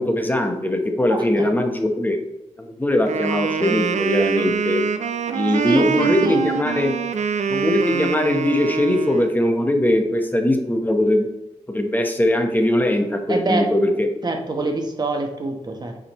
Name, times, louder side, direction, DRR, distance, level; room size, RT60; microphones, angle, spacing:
voice 1, 0.0-2.2 2.6-4.9 5.3-6.9 7.5-11.3 11.7-14.1, left 1 dB, 15° left, 4 dB, 1.1 m, -21 dB
voice 2, 1.1-1.5 5.6-6.4 13.3-13.9 14.2-16.0, right 2 dB, 35° right, 3 dB, 1.2 m, -25 dB
Wind instrument woodwind instrument, 3.1-9.3, right 6 dB, 70° right, 0.5 m, -24 dB
8.5 x 5.1 x 3.1 m, 0.95 s
cardioid pair, 75°, 12 cm